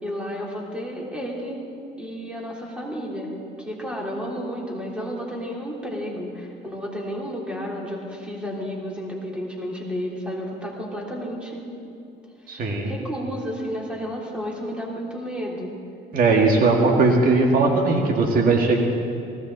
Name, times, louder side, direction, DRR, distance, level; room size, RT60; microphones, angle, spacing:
voice 1, 0.0-1.6 2.0-3.3 3.6-11.6 12.4-15.8, equal, 5° right, -3 dB, 3.5 m, -32 dB
voice 2, 12.5-12.9 16.1-18.8, right 3 dB, 60° right, 1 dB, 1.9 m, -19 dB
19.0 x 16.5 x 4.0 m, 2.6 s
cardioid pair, 110°, 17 cm